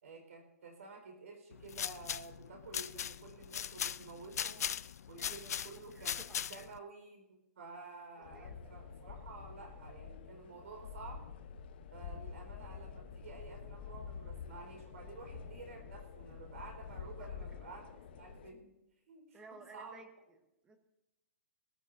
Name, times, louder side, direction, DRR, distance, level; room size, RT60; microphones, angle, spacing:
voice 1, 0.0-4.7 5.1-6.2 6.5-11.2 11.9-18.7 19.1-20.0, right 3 dB, 65° right, 3 dB, 4.6 m, -51 dB
sound 1, 1.5-6.8, left 8 dB, 85° left, 0.4 m, -39 dB
voice 2, 5.2-6.7 8.2-8.7 12.0-12.2 17.0-17.6 19.3-20.4 20.6-20.8, right 3 dB, 10° right, 6 dB, 1.0 m, -57 dB
sound 2, 8.2-18.5, left 6 dB, 40° left, 0.9 m, -48 dB
21.0 x 14.0 x 2.7 m, 0.93 s
hypercardioid pair, 175°, 8 cm